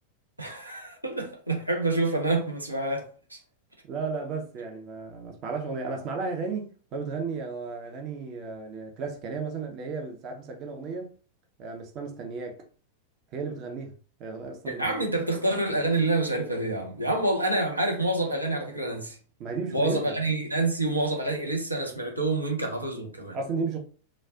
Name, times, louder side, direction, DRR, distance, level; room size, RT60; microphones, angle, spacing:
voice 1, 0.4-3.0 3.3-3.4 14.7-19.2 19.7-23.4, right 2 dB, 85° right, 0.8 m, -27 dB
voice 2, 3.8-11.1 11.6-12.6 13.3-13.9 14.2-15.0 19.4-20.2 23.3-23.8, right 4 dB, 35° right, 0.6 m, -34 dB
4.1 x 2.3 x 2.4 m
figure-of-eight pair, 90°, 0 cm